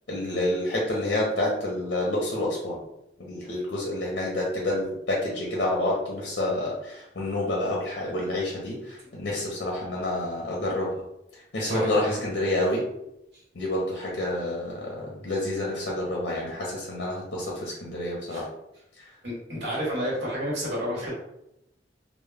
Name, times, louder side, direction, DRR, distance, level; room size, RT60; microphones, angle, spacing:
voice 1, 0.1-2.8 3.2-11.0 11.5-12.8 13.5-18.5 19.0-19.1, left 1 dB, 65° left, -3 dB, 0.6 m, -28 dB
voice 2, 11.6-12.2 18.3-18.4 19.2-21.1, equal, 80° right, -6 dB, 1.0 m, -30 dB
2.1 x 2.0 x 3.2 m, 0.83 s
head